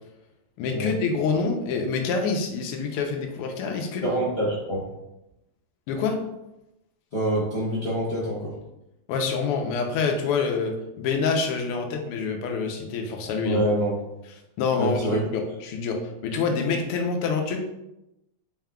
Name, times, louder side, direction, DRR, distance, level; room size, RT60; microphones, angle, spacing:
voice 1, 0.6-4.0 5.9-6.2 9.1-13.6 14.6-17.6, left 5 dB, 90° left, 3 dB, 1.6 m, -26 dB
voice 2, 4.0-4.8 7.1-8.5 13.4-13.9 14.8-15.2, right 1 dB, 60° left, -7 dB, 0.6 m, -25 dB
4.8 x 3.6 x 2.2 m, 0.90 s
omnidirectional pair, 2.4 m